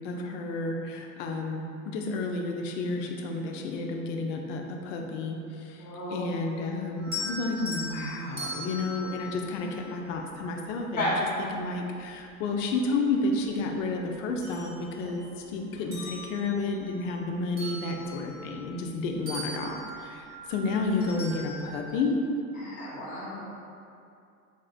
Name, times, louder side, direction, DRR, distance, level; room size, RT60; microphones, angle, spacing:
voice 1, 0.0-22.2, left 3 dB, 60° left, 2 dB, 0.5 m, -31 dB
voice 2, 5.8-6.2 7.8-8.0 11.0-11.1 22.6-23.4, left 2 dB, 20° left, -6 dB, 0.7 m, -35 dB
sound 1, 7.0-10.3 12.0-12.1 12.6-13.8 14.2-15.4 15.8-19.0 19.3-21.9, left 1 dB, 20° right, 0.8 m, -40 dB
3.8 x 2.1 x 2.4 m, 2.6 s
hypercardioid pair, 85°, 44 cm